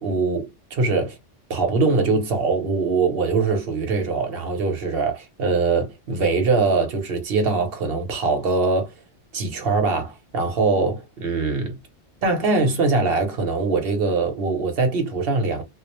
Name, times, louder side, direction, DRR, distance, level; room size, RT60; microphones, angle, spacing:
voice 1, 0.0-1.2 1.5-8.9 9.3-11.8 12.2-15.6, right 4 dB, 60° right, 0.9 m, -22 dB
2.4 x 2.0 x 2.8 m
omnidirectional pair, 1.2 m